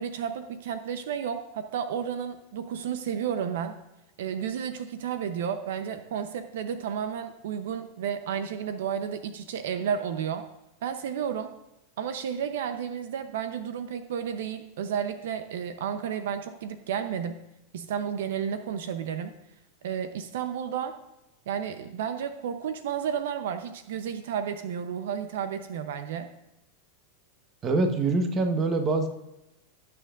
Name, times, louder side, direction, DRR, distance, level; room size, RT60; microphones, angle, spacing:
voice 1, 0.0-3.8 4.2-10.5 10.8-11.5 12.0-17.4 17.7-19.3 19.8-20.9 21.5-26.3, right 8 dB, 75° right, 9 dB, 0.7 m, -32 dB
voice 2, 27.6-29.1, right 3 dB, 25° right, 6 dB, 1.1 m, -24 dB
17.0 x 6.9 x 2.5 m, 0.90 s
supercardioid pair, 145°, 0 cm